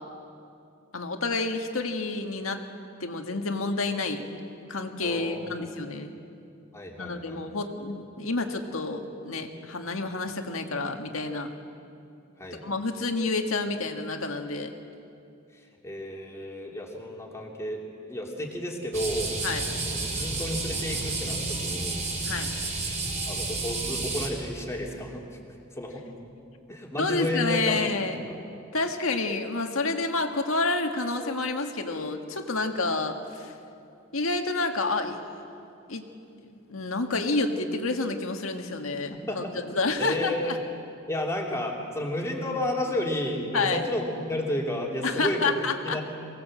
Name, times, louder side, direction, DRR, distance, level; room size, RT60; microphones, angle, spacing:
voice 1, 0.9-2.6 3.0-4.3 4.7-6.1 7.0-11.5 12.6-14.7 19.4-19.6 22.2-22.5 27.0-28.2 28.7-33.5 34.1-35.2 35.9-36.1 36.7-39.4 39.7-40.6 43.5-43.8 45.0-46.0, left 3 dB, 80° left, 5 dB, 1.7 m, -29 dB
voice 2, 5.0-5.7 6.7-7.4 12.4-12.6 15.5-19.3 19.9-22.0 23.3-25.4 25.8-26.0 26.7-28.0 28.3-28.4 39.1-39.5 40.0-40.6 41.1-46.0, left 1 dB, 15° left, -1 dB, 2.8 m, -32 dB
sound 1, 18.9-24.3, right 3 dB, 35° right, 4.5 m, -31 dB
23.5 x 18.0 x 7.7 m, 2.6 s
head